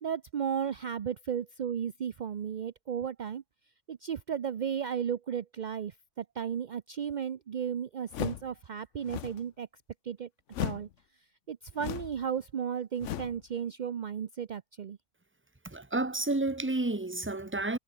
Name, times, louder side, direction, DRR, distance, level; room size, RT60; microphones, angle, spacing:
voice 1, 0.0-3.4 3.9-9.7 10.0-10.3 10.6-10.9 11.5-15.0, right 8 dB, 55° right, 0.5 m, -34 dB
sound 1, 8.1-8.5 9.0-9.4 10.5-10.9 11.8-12.2 13.0-13.4, left 11 dB, 60° left, 1.0 m, -36 dB
voice 2, 15.6-17.8, right 2 dB, 10° right, 1.1 m, -31 dB
omnidirectional pair, 1.5 m